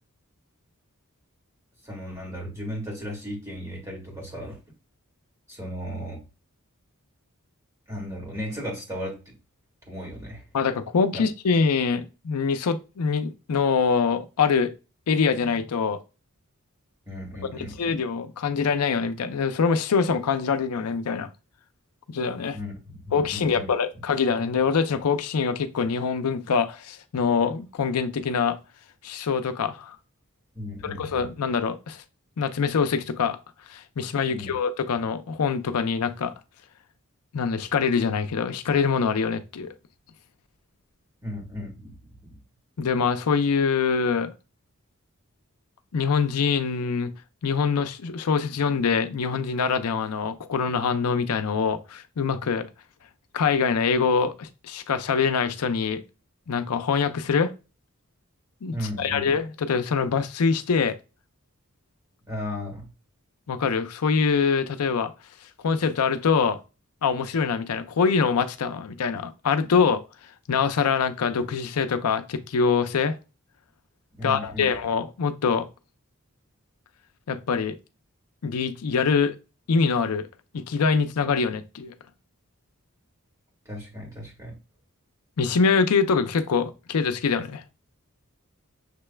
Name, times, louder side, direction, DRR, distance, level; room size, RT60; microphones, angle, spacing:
voice 1, 1.8-4.6 5.5-6.2 7.9-9.4 9.9-10.4 11.1-11.2 17.1-17.9 22.5-23.7 30.5-31.2 34.3-34.5 41.2-41.9 42.2-42.3 58.7-59.4 62.3-62.9 74.2-74.7 83.7-84.6, equal, 15° right, 1.7 m, -35 dB
voice 2, 10.5-14.7 15.1-16.0 17.5-21.3 22.1-22.6 23.1-28.6 29.0-30.0 30.8-32.0 32.4-33.4 33.7-36.3 37.3-39.7 42.8-44.3 45.9-47.1 47.4-52.7 53.3-56.0 56.5-57.5 58.6-61.0 63.5-65.1 65.6-66.6 67.0-70.0 70.5-73.2 74.2-75.7 77.3-77.7 78.4-79.3 79.7-80.3 80.5-81.9 85.4-87.6, left 5 dB, 85° left, 0.5 m, -24 dB
6.6 x 3.2 x 2.2 m
head